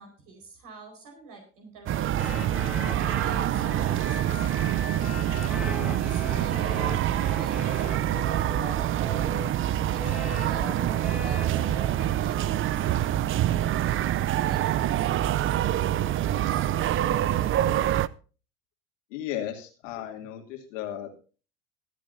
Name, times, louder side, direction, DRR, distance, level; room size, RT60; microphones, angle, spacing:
voice 1, 0.0-2.3 3.2-5.2 6.0-7.0 7.4-8.3 9.9-13.7 14.5-16.7, right 3 dB, 60° right, 1 dB, 4.9 m, -47 dB
sound 1, 1.9-18.1, right 12 dB, 35° right, 0.5 m, -26 dB
sound 2, 2.2-9.5 10.0-12.0, left 1 dB, 5° right, 2.6 m, -38 dB
voice 2, 19.1-21.2, left 11 dB, 80° left, 3 dB, 2.8 m, -35 dB
25.0 x 8.5 x 2.6 m, 0.36 s
hypercardioid pair, 85°, 37 cm